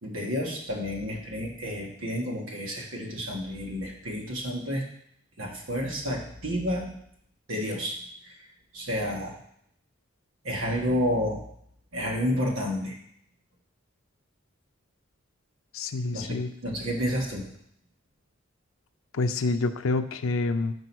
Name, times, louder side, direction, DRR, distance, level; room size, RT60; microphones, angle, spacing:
voice 1, 0.0-4.8 5.4-6.9 7.5-8.0 8.7-9.3 10.4-11.4 11.9-13.0 16.1-16.4 16.6-17.5, equal, 80° right, -1 dB, 1.7 m, -30 dB
voice 2, 15.7-16.5 19.1-20.7, left 3 dB, 85° left, 10 dB, 0.5 m, -27 dB
5.5 x 5.3 x 6.1 m, 0.69 s
head